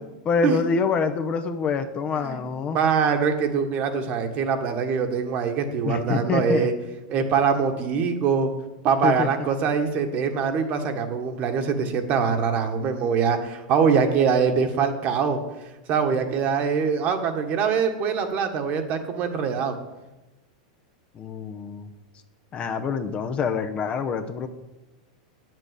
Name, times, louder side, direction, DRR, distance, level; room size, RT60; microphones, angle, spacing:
voice 1, 0.2-2.8 5.8-6.7 9.0-9.3 21.1-21.9 22.5-24.5, left 5 dB, 30° left, 7 dB, 0.8 m, -26 dB
voice 2, 2.7-6.7 7.1-8.5 8.8-15.4 15.9-19.7, right 6 dB, 40° right, 6 dB, 1.6 m, -23 dB
8.8 x 7.7 x 8.2 m, 1.0 s
supercardioid pair, 135°, 4 cm